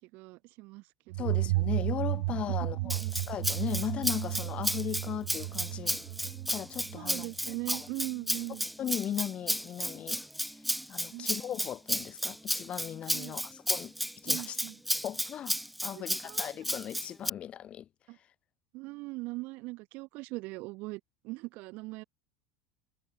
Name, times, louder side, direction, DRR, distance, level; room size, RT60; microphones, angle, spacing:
voice 1, 0.0-0.8 1.2-1.4 2.8-3.1 6.9-8.7 11.1-11.3 13.1-13.5 14.3-14.8 15.9-16.5 18.1-18.2 18.7-22.0, right 23 dB, 60° right, 4.5 m, -40 dB
sound 1, 1.1-7.7, right 22 dB, 85° right, 1.8 m, -33 dB
voice 2, 1.2-6.0 6.5-7.9 8.5-10.2 10.9-14.6 15.0-15.6 15.8-17.9, left 10 dB, 35° left, 6.0 m, -37 dB
Rattle (instrument), 2.9-17.3, equal, ahead, 1.0 m, -33 dB
supercardioid pair, 130°, 3 cm